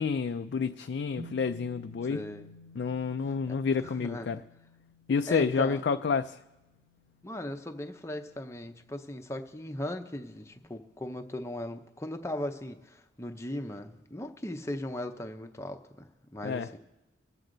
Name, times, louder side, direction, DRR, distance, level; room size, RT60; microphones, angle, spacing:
voice 1, 0.0-2.2 2.8-4.4 5.1-6.4 16.4-16.7, left 5 dB, 60° left, 0.3 m, -29 dB
sound 1, 1.2-10.6, left 1 dB, 30° right, 1.2 m, -54 dB
voice 2, 2.1-2.5 3.5-4.3 5.3-5.8 7.2-16.8, left 1 dB, 15° left, 0.7 m, -38 dB
23.0 x 8.0 x 3.9 m
head